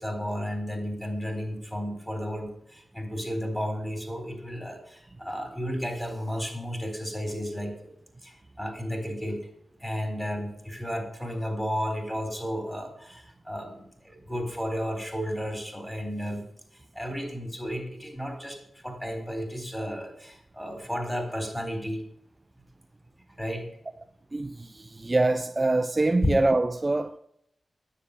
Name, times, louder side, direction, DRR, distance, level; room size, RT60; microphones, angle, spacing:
voice 1, 0.0-7.9 8.2-9.5 9.8-16.4 16.9-22.0 23.4-23.7 26.2-26.3, equal, 5° left, 4.2 m, -33 dB
voice 2, 24.3-27.2, right 2 dB, 30° right, 0.6 m, -24 dB
10.0 x 7.5 x 6.8 m
cardioid pair, 50°, 0 cm